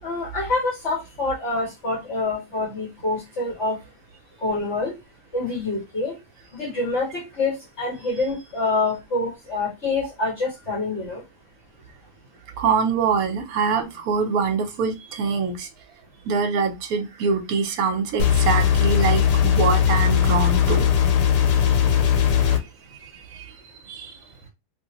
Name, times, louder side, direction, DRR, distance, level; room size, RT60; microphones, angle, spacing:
voice 1, 0.0-3.8 4.4-4.9 5.3-6.2 6.5-11.2, left 3 dB, 45° left, -5 dB, 1.6 m, -26 dB
voice 2, 12.6-15.7 16.2-20.9 23.0-23.5 23.9-24.2, right 5 dB, 65° right, 5 dB, 1.1 m, -24 dB
sound 1, 18.2-22.6, left 8 dB, 80° left, 1.2 m, -19 dB
2.8 x 2.7 x 2.9 m, 0.23 s
omnidirectional pair, 1.8 m